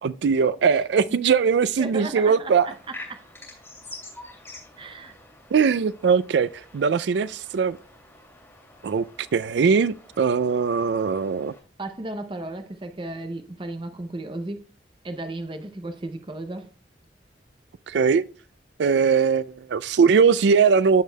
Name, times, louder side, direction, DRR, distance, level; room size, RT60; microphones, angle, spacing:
voice 1, 0.0-2.7 5.5-7.8 8.8-9.0 9.3-11.5 17.9-18.2 18.8-21.0, right 5 dB, 75° right, 0.3 m, -20 dB
voice 2, 1.8-3.2 4.8-5.1 11.8-14.6 15.0-16.7, right 2 dB, 25° right, 0.6 m, -35 dB
sound 1, 2.6-11.6, left 2 dB, 15° left, 3.0 m, -47 dB
14.5 x 5.1 x 2.2 m
head